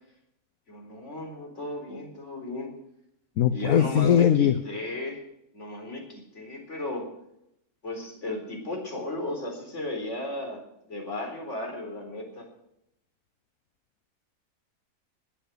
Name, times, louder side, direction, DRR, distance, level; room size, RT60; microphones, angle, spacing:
voice 1, 0.7-2.7 3.5-5.2 5.5-7.1 7.8-10.6 10.9-12.5, left 2 dB, 50° left, 2 dB, 4.4 m, -35 dB
voice 2, 3.4-4.5, left 9 dB, 70° left, 12 dB, 1.2 m, -20 dB
20.5 x 8.1 x 6.6 m, 0.79 s
omnidirectional pair, 1.6 m